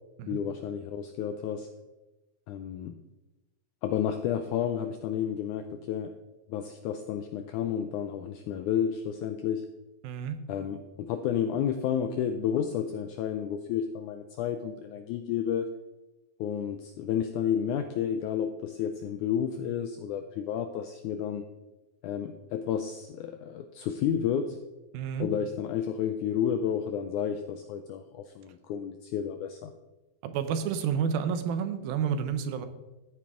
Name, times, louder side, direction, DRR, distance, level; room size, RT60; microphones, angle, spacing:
voice 1, 0.3-1.7 2.5-3.0 3.8-6.1 6.5-9.7 10.5-15.7 16.4-21.4 22.0-24.6 25.2-29.7, left 8 dB, 85° left, 8 dB, 1.7 m, -31 dB
voice 2, 10.0-10.4 24.9-25.3 30.2-32.7, right 7 dB, 85° right, 9 dB, 2.7 m, -30 dB
14.0 x 9.5 x 3.7 m, 1.1 s
omnidirectional pair, 4.2 m